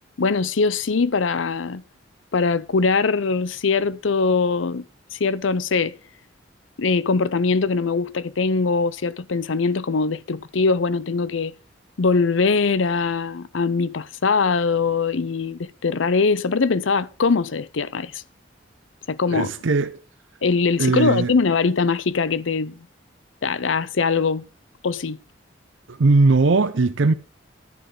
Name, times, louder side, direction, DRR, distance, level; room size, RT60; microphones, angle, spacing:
voice 1, 0.2-1.8 2.3-4.9 5.1-6.0 6.8-11.5 12.0-18.2 19.1-19.5 20.4-22.8 23.4-24.4 24.8-25.2, left 4 dB, 75° left, 0.6 m, -22 dB
voice 2, 19.3-20.0 20.8-21.3 25.9-27.1, right 3 dB, 70° right, 0.6 m, -19 dB
11.0 x 10.0 x 3.7 m
head